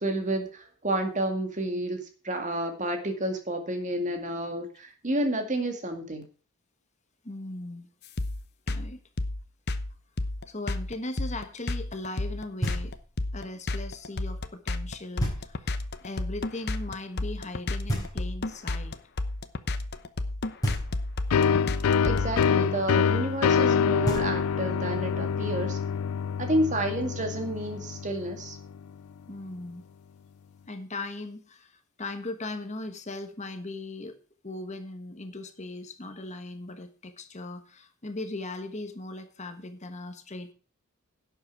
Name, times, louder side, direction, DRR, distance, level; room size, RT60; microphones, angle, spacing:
voice 1, 0.0-6.2 22.0-25.8 26.4-28.6, right 1 dB, 35° right, 5 dB, 2.2 m, -30 dB
voice 2, 7.2-7.9 8.7-9.0 10.5-12.9 13.3-19.0 29.3-29.8 30.7-34.2 34.4-40.5, left 2 dB, 30° left, 7 dB, 1.3 m, -38 dB
sound 1, 8.2-22.5, left 2 dB, 50° left, 0.9 m, -31 dB
Knock, 12.6-13.3 15.2-15.9 17.9-18.7 20.6-21.4 23.7-23.8 24.0-24.9, right 1 dB, 15° left, 5.3 m, -33 dB
sound 2, 21.3-28.8, left 6 dB, 80° left, 0.4 m, -26 dB
11.5 x 8.0 x 4.8 m, 0.38 s
head